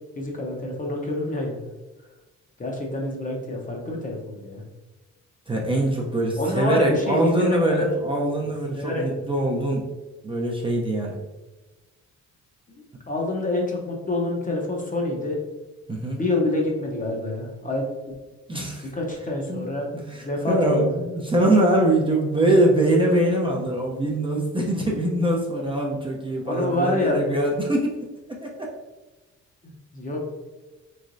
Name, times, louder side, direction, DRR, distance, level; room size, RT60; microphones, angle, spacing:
voice 1, 0.2-1.6 2.6-4.6 6.4-7.9 8.7-9.0 12.7-15.4 16.1-17.9 18.8-19.9 20.2-21.0 26.4-27.2 29.6-30.2, left 2 dB, 25° left, 0 dB, 0.8 m, -27 dB
voice 2, 5.5-9.8 10.2-11.2 15.9-16.2 18.5-18.9 19.5-19.7 20.1-28.0 28.3-28.7, right 1 dB, 15° right, -2 dB, 0.6 m, -23 dB
3.4 x 3.2 x 2.5 m, 1.1 s
cardioid pair, 90°, 30 cm